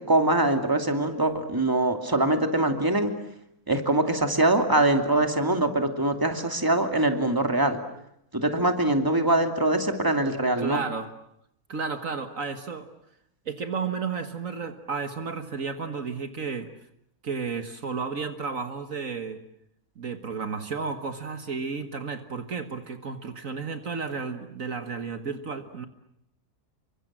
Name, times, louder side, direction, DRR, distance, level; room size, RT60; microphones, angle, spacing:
voice 1, 0.1-3.1 3.7-7.8 8.3-10.8, right 2 dB, 15° right, 5 dB, 2.7 m, -23 dB
voice 2, 10.6-11.1 11.7-12.9 13.5-16.7 17.2-19.4 20.0-25.9, right 5 dB, 60° right, 7 dB, 1.9 m, -32 dB
29.0 x 24.5 x 7.5 m, 0.76 s
omnidirectional pair, 1.6 m